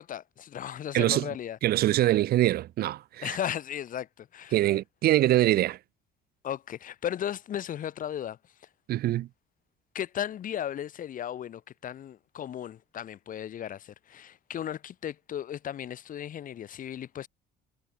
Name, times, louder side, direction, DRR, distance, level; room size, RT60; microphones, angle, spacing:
voice 1, 0.0-1.6 3.2-4.6 6.4-8.4 9.9-17.3, left 10 dB, 55° left, 2.7 m, -35 dB
voice 2, 0.9-1.3 1.6-3.4 4.5-5.8 8.9-9.3, right 14 dB, 65° right, 1.0 m, -24 dB
cardioid pair, 110°, 17 cm